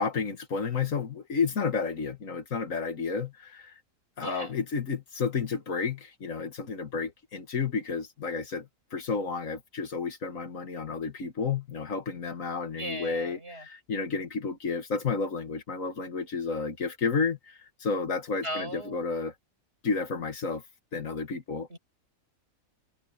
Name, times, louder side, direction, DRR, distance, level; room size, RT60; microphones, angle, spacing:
voice 1, 0.0-3.7 4.2-19.3 19.8-20.6 20.9-21.7, left 5 dB, 75° left, 2.1 m, -31 dB
voice 2, 4.2-4.5 12.8-13.7 18.4-19.1 21.7-21.8, right 1 dB, 50° right, 5.5 m, -37 dB
omnidirectional pair, 1.4 m